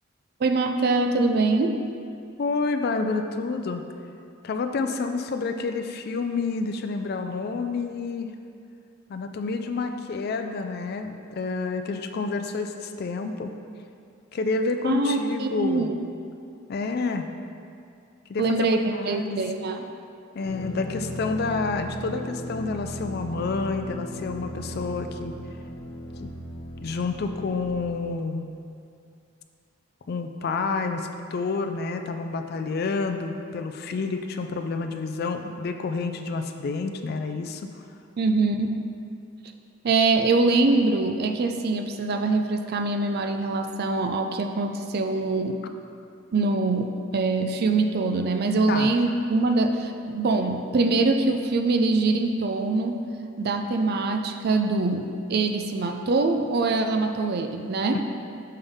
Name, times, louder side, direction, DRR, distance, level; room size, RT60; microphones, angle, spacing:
voice 1, 0.4-1.8 14.8-15.9 18.4-18.8 19.1-19.8 38.2-38.8 39.8-45.6 46.3-53.0 53.4-58.0, right 3 dB, 50° right, 5 dB, 0.4 m, -23 dB
voice 2, 2.4-3.9 4.4-8.3 9.1-13.5 14.3-15.9 16.7-17.3 18.3-18.7 18.9-19.4 20.3-25.4 26.2-26.3 26.8-28.5 30.1-37.7 48.7-48.9 57.9-58.0, left 4 dB, 50° left, 7 dB, 0.4 m, -29 dB
sound 1, 20.4-27.9, equal, 85° left, 0.9 m, -37 dB
5.6 x 5.3 x 3.5 m, 2.4 s
head